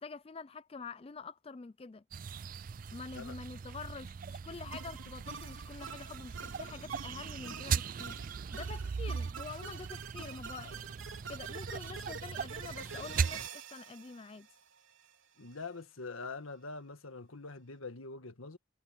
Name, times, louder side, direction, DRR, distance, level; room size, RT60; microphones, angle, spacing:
voice 1, 0.0-2.0 2.9-8.2 8.5-10.9 11.3-14.5, left 4 dB, 25° left, 0.4 m, -46 dB
sound 1, 2.1-13.5, right 6 dB, 40° right, 0.3 m, -39 dB
sound 2, 4.7-15.1, right 6 dB, 70° right, 3.2 m, -47 dB
voice 2, 15.4-18.6, left 3 dB, 85° left, 1.7 m, -44 dB
head